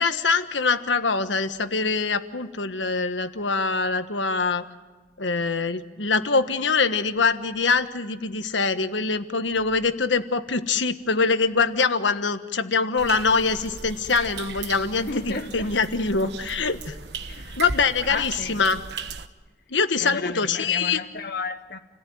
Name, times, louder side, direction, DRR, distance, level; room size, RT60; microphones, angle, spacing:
voice 1, 0.0-4.6 5.2-17.0 17.6-18.8 19.7-21.0, left 4 dB, 90° left, 1.4 m, -24 dB
sound 1, 13.0-19.3, right 4 dB, 65° right, 1.2 m, -37 dB
voice 2, 14.7-15.7 17.2-17.6 18.1-18.6 20.0-21.8, left 4 dB, 60° left, 1.2 m, -33 dB
29.0 x 18.0 x 9.3 m
head